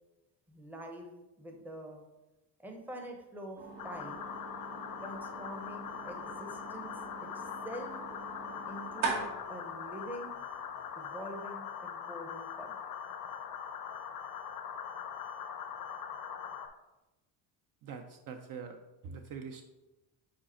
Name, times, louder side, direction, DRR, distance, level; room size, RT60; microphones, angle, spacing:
voice 1, 0.5-1.1 1.4-2.0 2.6-3.6 3.8-4.2 5.0-6.9 7.6-7.9 8.7-10.3 11.0-12.7, equal, 5° right, 2 dB, 0.6 m, -45 dB
sound 1, 3.6-11.3, right 4 dB, 80° right, 2.1 m, -42 dB
sound 2, 3.8-16.7, left 7 dB, 45° left, 0.6 m, -42 dB
voice 2, 17.8-19.6, right 6 dB, 45° right, 5 dB, 0.5 m, -44 dB
5.0 x 4.8 x 4.2 m, 1.0 s
cardioid pair, 145°, 46 cm